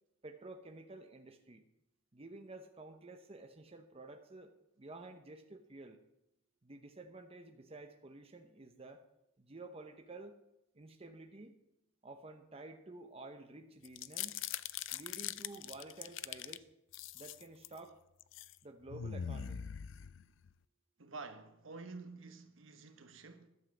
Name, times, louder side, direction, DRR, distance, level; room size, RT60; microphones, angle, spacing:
voice 1, 0.2-1.6 2.1-6.0 6.6-9.0 9.4-10.4 10.7-11.6 12.0-14.5 14.9-16.7 17.1-18.0 18.6-19.7, right 2 dB, 30° right, 0.8 m, -51 dB
sound 1, 13.8-16.6 16.9-17.8 18.2-18.5 18.9-20.5, left 10 dB, 65° left, 0.4 m, -42 dB
voice 2, 21.0-23.5, right 3 dB, 75° right, 1.2 m, -49 dB
12.0 x 7.4 x 7.2 m
head